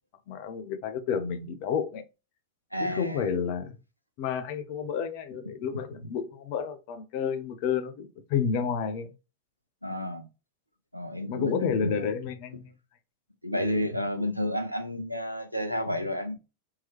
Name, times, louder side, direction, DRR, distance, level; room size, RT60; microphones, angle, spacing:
voice 1, 0.3-2.0 2.8-3.8 4.2-9.1 11.3-12.7, left 7 dB, 45° left, 0.7 m, -30 dB
voice 2, 2.7-3.2 9.8-10.3 10.9-12.1 13.4-16.4, left 1 dB, 90° right, 0.6 m, -31 dB
3.7 x 3.0 x 2.9 m
figure-of-eight pair, 90°, 0 cm